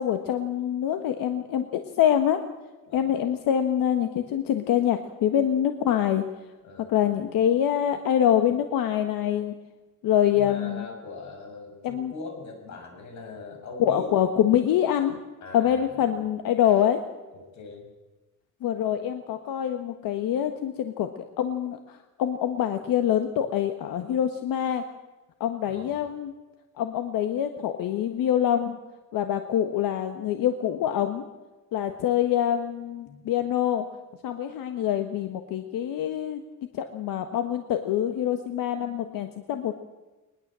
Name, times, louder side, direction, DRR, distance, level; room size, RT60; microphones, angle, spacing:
voice 1, 0.0-2.4 2.9-6.2 6.8-9.5 10.0-10.9 11.8-12.1 13.8-15.2 15.5-17.0 18.6-24.8 25.4-26.3 26.8-28.8 29.1-31.2 31.7-33.8 34.2-36.4 36.7-39.7, left 10 dB, 85° left, 7 dB, 1.5 m, -25 dB
voice 2, 10.3-14.1 15.4-16.2 17.5-17.9 25.7-26.0 33.1-33.3, left 3 dB, 60° left, 4 dB, 6.5 m, -41 dB
21.0 x 20.5 x 7.6 m, 1.2 s
cardioid pair, 160°, 33 cm